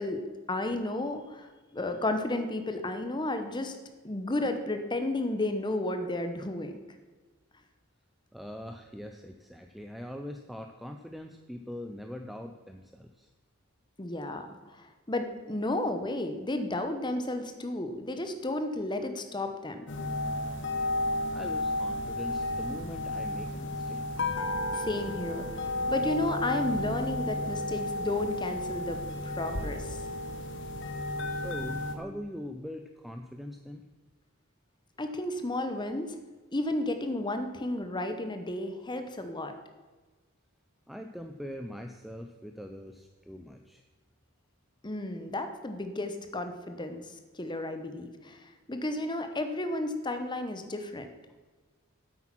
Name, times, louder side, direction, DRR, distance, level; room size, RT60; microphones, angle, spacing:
voice 1, 0.0-3.8 4.0-6.8 14.0-19.8 24.7-30.0 35.0-36.2 36.5-39.5 44.8-47.0 47.3-51.1, left 2 dB, 20° left, 7 dB, 0.9 m, -33 dB
voice 2, 8.3-13.3 21.3-24.3 31.3-33.9 40.9-43.8, equal, ahead, 5 dB, 0.4 m, -42 dB
sound 1, 19.9-31.9, left 1 dB, 55° left, 1.1 m, -33 dB
8.5 x 8.4 x 6.0 m, 1.3 s
head